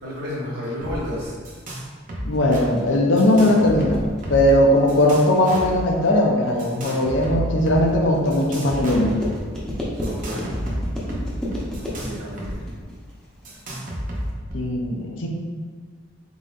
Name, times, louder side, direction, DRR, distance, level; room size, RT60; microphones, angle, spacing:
voice 1, 0.0-1.3 10.0-10.6 11.8-12.6, left 1 dB, 70° right, -11 dB, 1.2 m, -31 dB
sound 1, 0.8-1.0 1.2-1.8 2.1-2.6 3.2-4.6 4.9-5.8 6.6-7.8 8.3-9.4 10.0-12.5 12.8-12.9 13.4-14.5, equal, 40° right, 0.7 m, -31 dB
voice 2, 2.2-9.2 14.5-15.3, left 1 dB, 70° left, 1 dB, 0.6 m, -19 dB
sound 2, 2.3-14.3, equal, 5° left, 0.6 m, -33 dB
3.9 x 3.8 x 2.5 m, 1.5 s
head